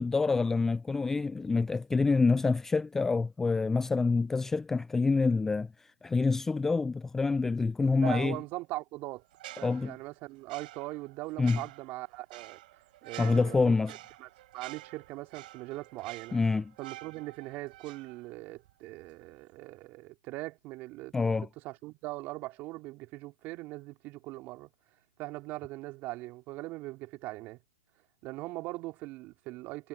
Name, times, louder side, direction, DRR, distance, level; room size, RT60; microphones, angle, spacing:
voice 1, 0.0-8.4 9.6-10.0 11.4-11.6 13.2-13.9 16.3-16.7 21.1-21.5, left 4 dB, 5° left, 0.4 m, -27 dB
voice 2, 8.0-9.2 9.6-12.6 13.0-13.7 14.2-14.3 14.5-16.4 16.8-21.3 21.6-24.7 25.2-27.6 28.2-29.9, right 20 dB, 25° right, 2.6 m, -40 dB
sound 1, 9.3-18.7 19.0-19.2, right 16 dB, 45° right, 3.7 m, -49 dB
hypercardioid pair, 135°, 7 cm